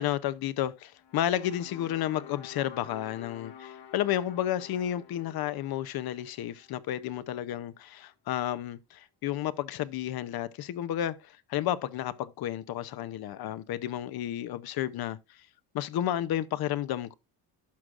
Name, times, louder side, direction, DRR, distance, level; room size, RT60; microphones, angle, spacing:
voice 1, 0.0-15.5 15.7-17.1, left 12 dB, 65° left, 0.7 m, -32 dB
sound 1, 1.0-7.2, left 9 dB, 80° left, 2.0 m, -49 dB
11.5 x 6.1 x 2.4 m
cardioid pair, 145°, 40 cm